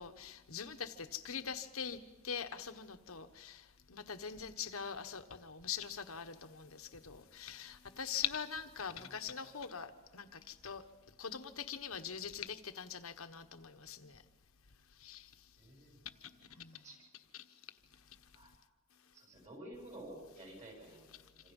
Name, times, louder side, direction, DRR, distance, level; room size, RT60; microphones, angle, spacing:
voice 1, 0.0-2.0 2.2-3.6 3.9-10.8 11.2-14.2 15.0-15.3 16.6-16.8 17.3-17.4, left 7 dB, 85° left, 8 dB, 1.3 m, -43 dB
voice 2, 15.6-16.0 16.7-17.0 18.3-18.5 19.1-21.5, right 1 dB, 35° right, 1 dB, 7.4 m, -52 dB
27.0 x 26.5 x 5.5 m, 1.2 s
head